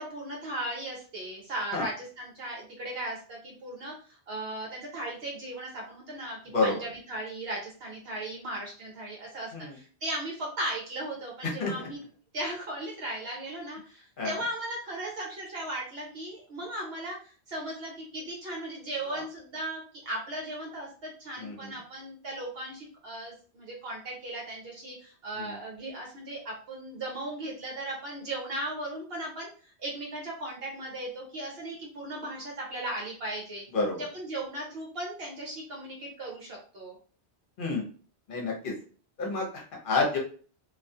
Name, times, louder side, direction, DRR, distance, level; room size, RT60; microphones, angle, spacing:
voice 1, 0.0-12.0 12.3-33.6 33.9-36.9, right 1 dB, 65° right, -2 dB, 0.9 m, -37 dB
voice 2, 21.4-21.7 25.4-25.6 33.7-34.0 37.6-37.8 38.3-38.7 39.2-40.2, left 3 dB, 55° left, -1 dB, 0.9 m, -29 dB
2.3 x 2.3 x 2.6 m, 0.42 s
omnidirectional pair, 1.1 m